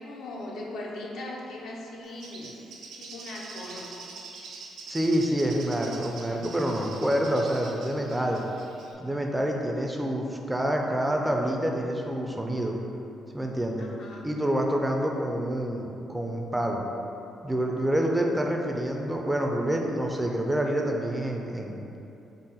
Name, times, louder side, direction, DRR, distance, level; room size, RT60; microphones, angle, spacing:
voice 1, 0.0-2.6 3.0-3.9 13.8-14.3, left 1 dB, 75° left, -2 dB, 0.6 m, -39 dB
Bird, 2.0-8.9, right 4 dB, 80° right, 0.4 m, -45 dB
voice 2, 4.9-8.4 9.0-12.8 13.3-13.8 14.2-16.8 17.4-21.9, right 1 dB, 10° right, 1 dB, 0.4 m, -27 dB
3.9 x 2.1 x 3.8 m, 2.8 s
cardioid pair, 90°, 0 cm